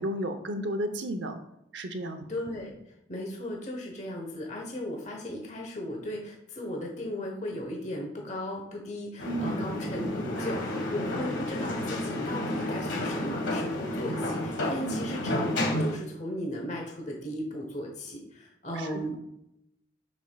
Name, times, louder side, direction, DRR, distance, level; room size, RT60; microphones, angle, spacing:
voice 1, 0.0-1.4 1.7-2.2 9.2-9.6 14.8-15.0 18.7-19.0, right 1 dB, 70° right, 8 dB, 0.8 m, -33 dB
voice 2, 2.3-2.7 3.1-19.2, left 1 dB, 40° left, 0 dB, 1.0 m, -36 dB
sound 1, 9.2-15.9, left 1 dB, 90° left, 1.5 m, -31 dB
9.4 x 5.3 x 2.3 m, 0.83 s
head